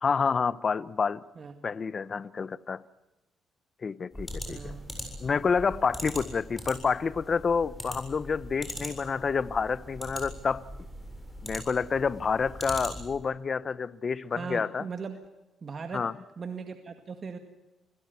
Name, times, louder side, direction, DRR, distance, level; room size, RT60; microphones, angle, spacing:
voice 1, 0.0-1.2 1.6-2.8 3.8-4.7 5.2-10.6 11.4-14.8 15.9-16.1, left 5 dB, 40° left, 0.8 m, -28 dB
sound 1, 4.1-13.3, equal, 5° left, 7.5 m, -41 dB
voice 2, 4.5-4.8 14.3-15.2 15.6-16.1 16.4-17.4, right 5 dB, 40° right, 2.0 m, -38 dB
26.5 x 16.5 x 9.5 m
cardioid pair, 90°, 0 cm